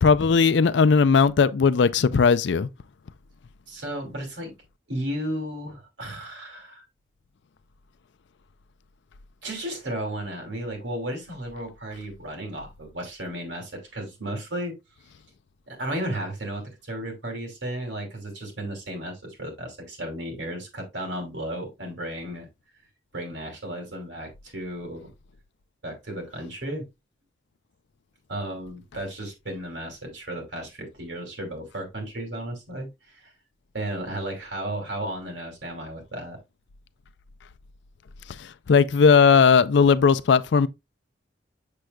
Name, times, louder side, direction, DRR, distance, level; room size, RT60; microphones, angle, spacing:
voice 1, 0.0-2.7 38.7-40.7, left 5 dB, 75° left, 0.4 m, -17 dB
voice 2, 3.7-4.5 4.9-6.8 9.4-14.7 15.7-22.5 23.1-25.1 25.8-26.9 28.3-32.9 33.2-33.3 33.7-36.4, right 1 dB, 75° right, 2.6 m, -34 dB
6.8 x 6.3 x 2.2 m
head